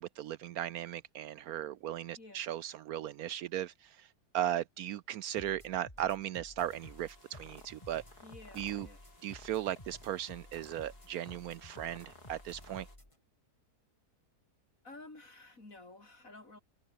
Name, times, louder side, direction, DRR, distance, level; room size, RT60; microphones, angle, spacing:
voice 1, 0.0-4.1 4.3-8.0 8.6-8.9 9.2-12.9, right 11 dB, 70° right, 1.0 m, -37 dB
voice 2, 2.2-2.5 8.2-9.0 14.8-16.6, left 2 dB, 55° left, 6.1 m, -52 dB
sound 1, 5.4-13.2, left 1 dB, 20° left, 5.8 m, -54 dB
sound 2, 6.6-13.0, left 2 dB, 70° left, 6.1 m, -58 dB
omnidirectional pair, 1.7 m